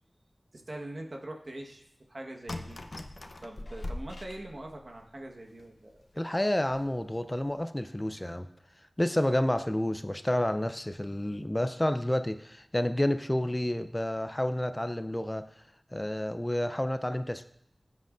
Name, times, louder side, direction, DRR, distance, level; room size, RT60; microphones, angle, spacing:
voice 1, 0.5-2.8 3.4-6.0, right 1 dB, 60° right, 2 dB, 1.3 m, -43 dB
sound 1, 2.5-5.0 5.6-5.7 5.9-6.0 6.7-7.0 7.3-7.6, left 1 dB, 65° left, 0.7 m, -41 dB
voice 2, 6.2-8.5 9.0-15.4 15.9-17.5, left 1 dB, 20° left, 9 dB, 0.5 m, -29 dB
16.0 x 7.8 x 2.5 m, 0.73 s
wide cardioid pair, 65°, 0 cm